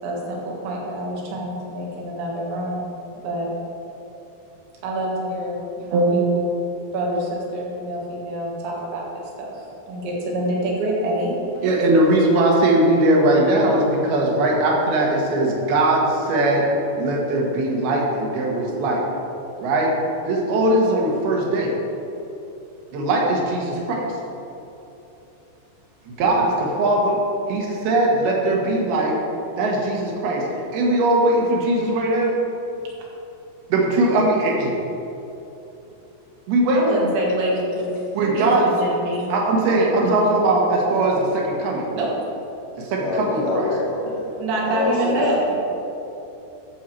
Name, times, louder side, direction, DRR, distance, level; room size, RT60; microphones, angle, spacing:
voice 1, 0.0-2.9 3.2-3.5 4.8-6.5 6.9-9.0 9.4-11.3 36.7-37.9 38.3-39.3 42.0-42.1 44.4-45.5, right 1 dB, 85° right, -3 dB, 4.0 m, -26 dB
voice 2, 11.6-16.7 17.0-19.0 19.6-19.9 20.2-21.7 22.9-24.1 26.2-27.2 27.5-29.2 29.6-30.5 30.7-32.3 33.7-34.7 36.5-36.8 38.1-39.0 39.2-41.8 42.8-43.7, right 2 dB, 70° right, -1 dB, 3.1 m, -20 dB
voice 3, 43.0-44.2 44.7-45.5, left 3 dB, 85° left, -2 dB, 1.9 m, -25 dB
11.5 x 7.2 x 4.6 m, 2.9 s
omnidirectional pair, 5.1 m